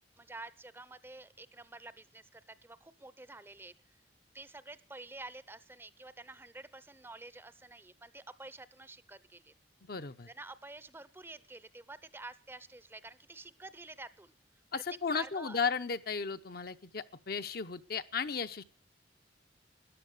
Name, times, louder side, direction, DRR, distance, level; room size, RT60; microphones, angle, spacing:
voice 1, 0.2-3.7 4.3-9.5 10.3-14.3 15.0-15.6, right 2 dB, 15° right, 16 dB, 0.6 m, -49 dB
voice 2, 9.9-10.3 14.7-18.6, left 5 dB, 60° left, 10 dB, 0.8 m, -35 dB
14.0 x 11.0 x 6.6 m, 0.38 s
head